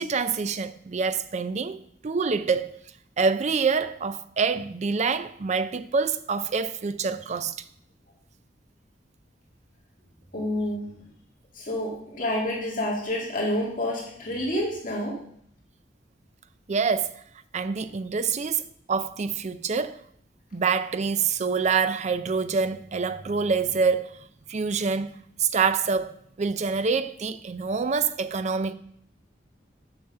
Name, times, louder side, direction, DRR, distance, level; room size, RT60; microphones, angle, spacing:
voice 1, 0.0-2.7 3.2-7.7 16.7-17.2 17.5-18.6 18.9-20.0 20.5-28.7, right 5 dB, 40° right, 0.5 m, -26 dB
voice 2, 10.3-10.8 11.5-15.2, left 1 dB, 50° left, 2.2 m, -28 dB
7.0 x 5.9 x 6.6 m
head